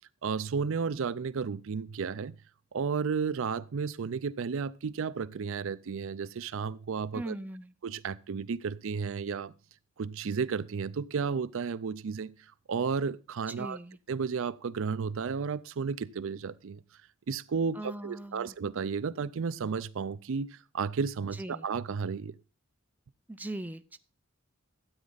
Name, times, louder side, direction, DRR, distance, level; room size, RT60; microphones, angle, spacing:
voice 1, 0.2-2.3 2.7-7.3 7.8-9.5 10.0-12.3 12.7-13.8 14.1-16.8 17.3-22.3, right 5 dB, 65° right, 0.5 m, -33 dB
voice 2, 7.1-7.7 13.6-14.0 17.8-18.5 21.4-21.7 23.3-24.0, right 1 dB, 10° right, 0.5 m, -40 dB
13.0 x 8.5 x 4.0 m
head